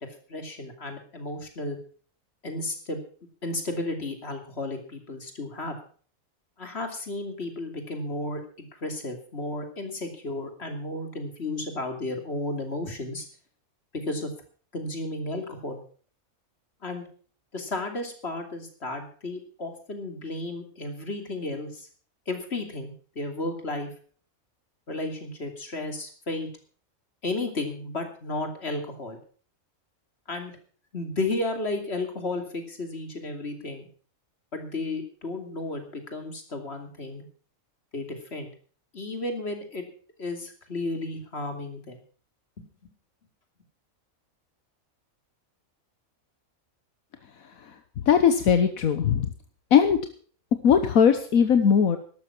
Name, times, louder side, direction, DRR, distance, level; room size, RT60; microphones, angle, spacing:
voice 1, 0.3-1.8 2.4-3.0 3.4-5.7 6.6-13.2 13.9-14.3 14.7-15.8 16.8-17.0 17.5-21.9 22.3-23.9 24.9-26.5 27.2-29.2 30.3-30.5 30.9-33.9 34.5-37.2 37.9-38.5 38.9-39.8 40.2-42.0, left 2 dB, 50° left, 5 dB, 3.0 m, -33 dB
voice 2, 48.1-49.3 49.7-50.0 50.6-52.0, left 7 dB, 80° left, 9 dB, 1.5 m, -19 dB
13.0 x 12.0 x 6.1 m, 0.43 s
omnidirectional pair, 1.5 m